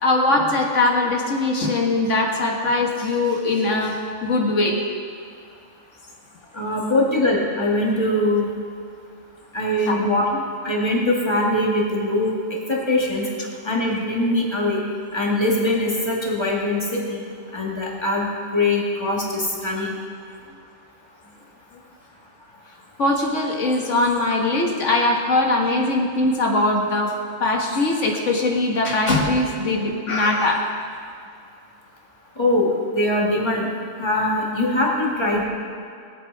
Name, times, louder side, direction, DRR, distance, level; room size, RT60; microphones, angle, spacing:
voice 1, 0.0-4.8 9.9-10.1 19.8-19.9 23.0-30.6, left 2 dB, 75° left, 1 dB, 1.9 m, -21 dB
voice 2, 6.5-8.5 9.5-10.3 10.6-12.4 12.7-13.3 13.6-14.8 15.1-17.2 17.5-20.0 32.4-33.7 34.0-35.4, left 1 dB, 20° left, -3 dB, 2.2 m, -22 dB
20.5 x 8.2 x 4.8 m, 2.4 s
omnidirectional pair, 1.3 m